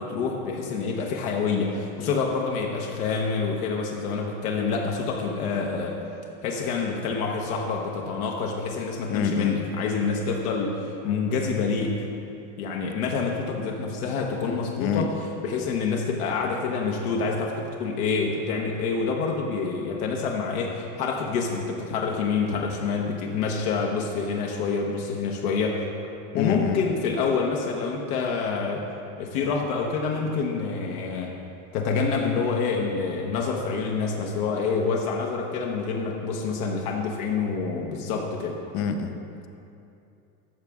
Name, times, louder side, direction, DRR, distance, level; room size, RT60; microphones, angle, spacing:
voice 1, 0.0-5.9 6.4-12.0 12.6-15.1 15.4-25.8 26.3-28.9 29.2-31.3 31.7-38.6, left 4 dB, 65° left, -1 dB, 1.1 m, -27 dB
voice 2, 9.1-9.5 14.8-15.1 26.3-26.8 38.7-39.2, left 7 dB, 40° left, 7 dB, 0.6 m, -26 dB
13.5 x 5.9 x 3.6 m, 2.7 s
supercardioid pair, 140°, 48 cm